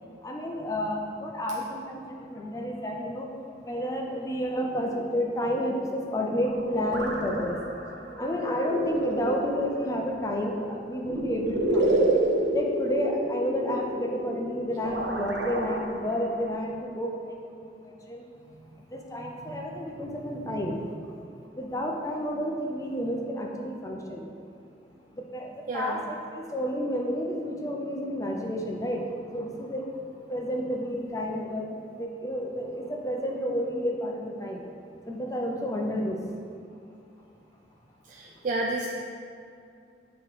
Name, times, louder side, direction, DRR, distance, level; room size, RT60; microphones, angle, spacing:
voice 1, 0.2-3.3 3.7-7.6 8.2-12.1 12.5-17.1 18.1-18.2 18.9-20.8 21.6-24.2 25.2-26.2 26.5-29.0 29.3-29.8 30.3-31.7 32.0-34.6 35.1-36.2, equal, 20° left, 0 dB, 0.5 m, -30 dB
sound 1, 6.4-16.5, right 1 dB, 85° right, 0.7 m, -30 dB
voice 2, 25.7-26.0 38.1-38.9, right 2 dB, 45° right, -2 dB, 0.4 m, -30 dB
7.9 x 3.0 x 4.8 m, 2.5 s
head